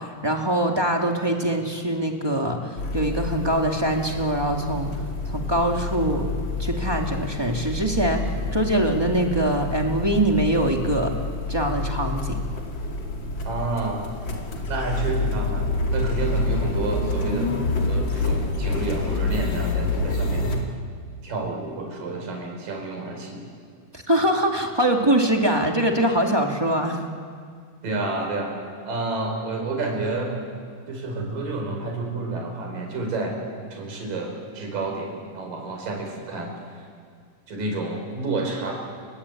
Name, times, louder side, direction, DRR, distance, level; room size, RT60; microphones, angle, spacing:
voice 1, 0.0-4.9 5.3-6.3 6.6-11.1 11.5-12.4 23.9-27.0, right 1 dB, 10° right, 1 dB, 1.4 m, -23 dB
sound 1, 2.8-20.6, left 2 dB, 35° left, 2.7 m, -28 dB
voice 2, 13.4-14.0 14.7-17.6 17.9-20.5 21.2-23.4 27.8-28.5 28.8-30.4 30.9-33.4 33.7-36.5 37.5-38.7, right 3 dB, 65° right, 1 dB, 6.4 m, -29 dB
30.0 x 23.0 x 8.6 m, 2.1 s
omnidirectional pair, 4.2 m